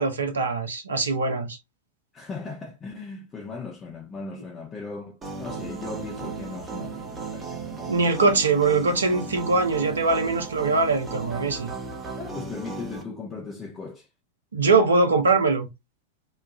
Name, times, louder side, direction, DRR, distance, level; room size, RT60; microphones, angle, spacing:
voice 1, 0.0-1.6 7.9-11.7 14.5-15.7, right 3 dB, 70° right, 0.6 m, -22 dB
voice 2, 2.1-8.1 12.2-14.1, left 4 dB, 20° left, 0.6 m, -38 dB
sound 1, 5.2-13.0, right 4 dB, 20° right, 0.8 m, -36 dB
3.1 x 2.3 x 2.3 m
figure-of-eight pair, 90°, 0 cm